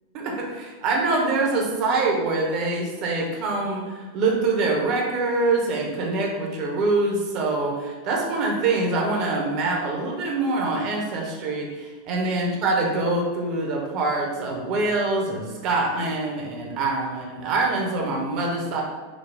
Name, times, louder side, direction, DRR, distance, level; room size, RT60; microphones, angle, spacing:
voice 1, 0.1-18.8, right 3 dB, 40° right, 0 dB, 0.9 m, -25 dB
5.2 x 2.3 x 3.5 m, 1.4 s
figure-of-eight pair, 90°, 0 cm